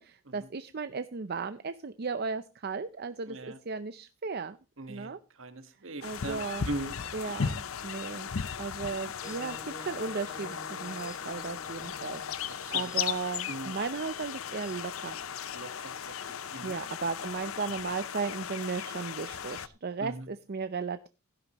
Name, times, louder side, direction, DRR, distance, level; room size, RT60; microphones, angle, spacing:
voice 1, 0.0-3.4 3.7-4.6 4.9-5.2 6.0-6.7 7.1-8.3 8.6-15.2 16.6-21.1, right 4 dB, 50° right, 12 dB, 0.5 m, -36 dB
voice 2, 3.3-3.6 4.8-5.1 5.4-6.4 6.6-7.0 12.6-12.9 13.5-13.7 15.5-15.7 16.1-16.8 20.0-20.2, right 2 dB, 65° right, 9 dB, 1.5 m, -39 dB
sound 1, 6.0-19.7, left 7 dB, 75° left, 0.7 m, -37 dB
sound 2, 9.2-15.3, left 1 dB, 15° left, 2.7 m, -51 dB
16.0 x 11.5 x 3.0 m, 0.29 s
head